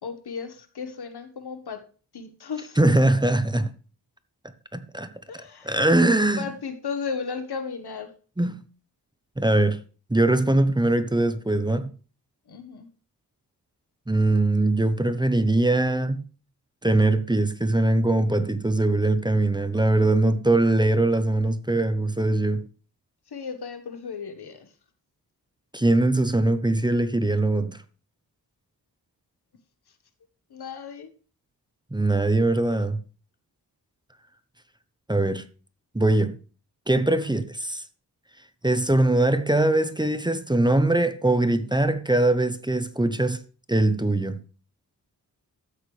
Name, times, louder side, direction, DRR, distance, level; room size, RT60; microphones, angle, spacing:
voice 1, 0.0-1.8 2.1-2.8 5.3-5.8 6.4-8.1 12.5-12.9 23.3-24.7 30.5-31.1, left 5 dB, 80° left, 1.5 m, -35 dB
voice 2, 2.8-3.7 4.7-6.5 8.4-8.6 9.4-9.8 10.1-11.9 14.1-16.2 16.8-22.6 25.7-27.8 31.9-33.0 35.1-35.4 35.9-36.4 36.9-37.8 38.6-43.4 43.7-44.4, right 2 dB, 10° right, 0.8 m, -22 dB
13.0 x 8.1 x 3.3 m
wide cardioid pair, 70°, 39 cm